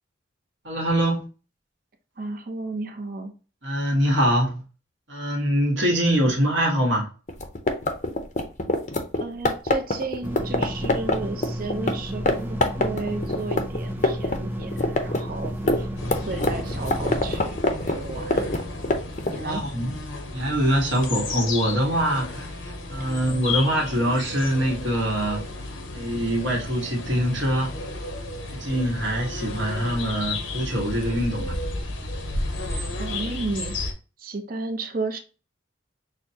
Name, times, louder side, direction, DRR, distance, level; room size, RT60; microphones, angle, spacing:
voice 1, 0.6-1.3 3.6-4.6 5.1-7.1 19.4-19.9 20.3-25.4 25.9-27.8 28.5-31.6, equal, 70° right, 1.4 m, -24 dB
voice 2, 2.2-3.3 9.2-15.9 16.3-18.5 19.3-19.6 32.9-33.9 34.2-35.2, right 3 dB, 45° right, 0.7 m, -33 dB
sound 1, 7.3-11.9 12.3-12.4 12.6-14.4 14.6-19.4, left 2 dB, 40° left, 0.6 m, -24 dB
sound 2, 10.2-17.4, equal, 10° right, 0.5 m, -32 dB
sound 3, 16.0-33.9, left 2 dB, 80° left, 0.8 m, -33 dB
6.3 x 2.2 x 2.8 m
head